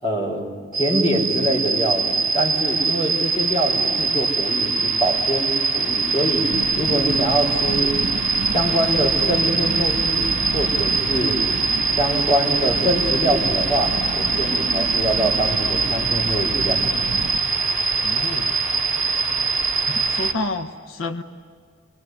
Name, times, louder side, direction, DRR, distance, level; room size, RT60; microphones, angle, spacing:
voice 1, 0.0-0.5 0.7-6.5 6.8-8.0 8.5-10.3 10.5-11.3 12.0-16.8, equal, 30° left, 1 dB, 5.1 m, -24 dB
sound 1, 0.7-20.3, right 4 dB, ahead, 3.6 m, -22 dB
sound 2, 6.5-17.4, right 2 dB, 85° right, 0.9 m, -31 dB
voice 2, 18.0-18.5 19.9-21.2, left 2 dB, 90° left, 8 dB, 1.2 m, -29 dB
24.5 x 22.5 x 9.6 m, 2.1 s
head